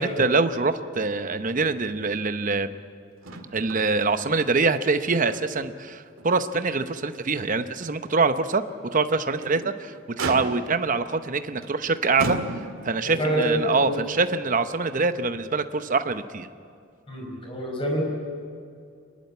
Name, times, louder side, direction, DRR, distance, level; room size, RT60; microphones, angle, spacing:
voice 1, 0.0-2.7 3.5-8.6 8.9-9.9 10.3-12.4 12.8-16.5, right 4 dB, 40° right, 10 dB, 0.8 m, -24 dB
Motor vehicle (road), 3.2-3.9 4.2-4.3 4.8-5.7 6.2-6.3 6.8-6.9 9.1-9.6 10.2-10.9 11.6-11.8 12.2-13.0 14.0-14.1, right 2 dB, 75° right, 2.0 m, -33 dB
voice 2, 13.0-14.0 17.1-18.0, equal, 25° left, 0 dB, 4.9 m, -27 dB
26.0 x 11.5 x 9.6 m, 2.3 s
head